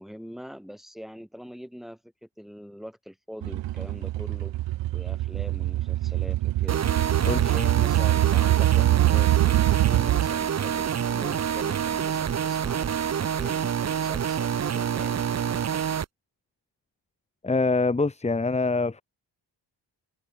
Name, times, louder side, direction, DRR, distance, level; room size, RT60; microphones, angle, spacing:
voice 1, 0.0-4.5 4.9-12.9 13.2-15.8, equal, ahead, 7.9 m, -43 dB
sound 1, 3.4-10.4, right 15 dB, 80° right, 0.7 m, -24 dB
sound 2, 6.7-16.0, right 8 dB, 35° right, 0.9 m, -27 dB
voice 2, 17.4-19.0, left 3 dB, 15° left, 1.4 m, -24 dB
wide cardioid pair, 140°, 44 cm